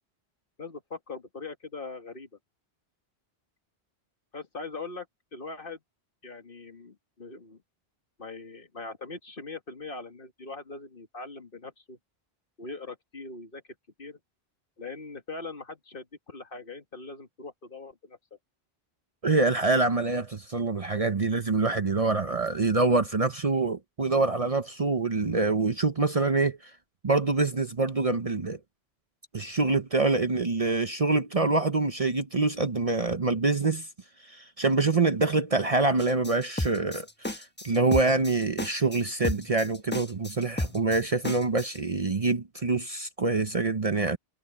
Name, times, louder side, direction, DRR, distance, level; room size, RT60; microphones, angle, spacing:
voice 1, 0.6-2.3 4.3-5.1 5.3-5.8 6.2-7.6 8.2-12.0 12.6-13.6 14.0-14.2 14.8-18.2, left 3 dB, 55° left, 2.1 m, -41 dB
voice 2, 19.2-26.7 27.0-28.6 29.3-33.9 34.2-44.2, right 3 dB, 35° right, 0.8 m, -25 dB
sound 1, 36.0-41.8, left 1 dB, 10° left, 1.2 m, -33 dB
omnidirectional pair, 1.1 m